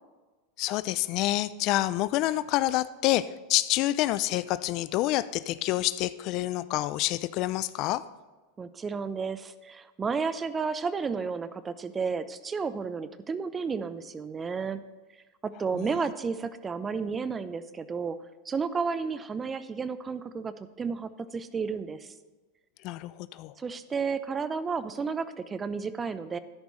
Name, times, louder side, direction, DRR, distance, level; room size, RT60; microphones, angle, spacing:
voice 1, 0.6-8.0 15.7-15.9 22.8-23.5, left 16 dB, 50° left, 16 dB, 0.4 m, -28 dB
voice 2, 8.6-14.8 15.4-18.2 18.5-22.0 23.6-26.4, right 5 dB, 25° right, 13 dB, 0.7 m, -32 dB
12.5 x 10.5 x 3.2 m, 1.2 s
hypercardioid pair, 95°, 0 cm